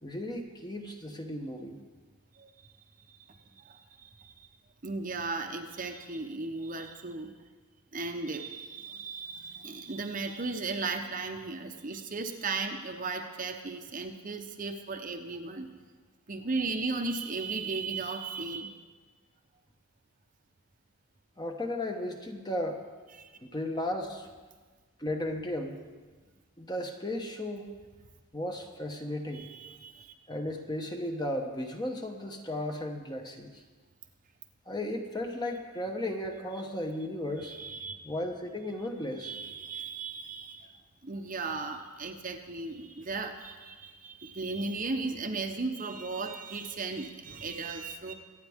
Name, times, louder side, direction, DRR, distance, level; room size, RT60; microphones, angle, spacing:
voice 1, 0.0-1.8 21.4-22.8 23.4-24.3 25.0-25.8 26.6-27.7 28.3-29.5 30.3-33.6 34.7-37.5 38.0-39.3, left 1 dB, 20° left, 3 dB, 1.0 m, -35 dB
voice 2, 2.3-2.7 3.1-4.5 4.8-7.3 7.9-15.7 16.3-18.8 23.1-23.3 29.3-30.1 37.4-38.0 39.2-40.8 41.0-48.1, right 3 dB, 40° right, 5 dB, 0.9 m, -36 dB
24.0 x 9.1 x 3.6 m, 1.4 s
head